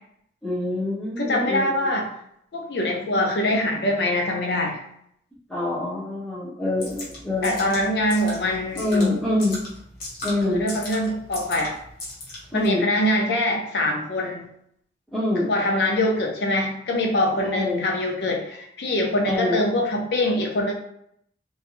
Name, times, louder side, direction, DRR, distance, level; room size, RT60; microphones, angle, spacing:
voice 1, 0.4-1.9 5.5-7.5 8.8-9.6 10.2-10.6 12.5-12.9 15.1-15.5 17.4-17.9 19.2-19.6, left 2 dB, ahead, -10 dB, 0.4 m, -25 dB
voice 2, 1.2-2.1 2.5-4.8 7.4-9.2 10.5-11.7 12.5-14.5 15.4-20.7, left 1 dB, 75° left, 2 dB, 0.5 m, -24 dB
sound 1, 6.8-12.7, left 1 dB, 50° left, 1.0 m, -38 dB
2.3 x 2.1 x 2.9 m, 0.72 s
head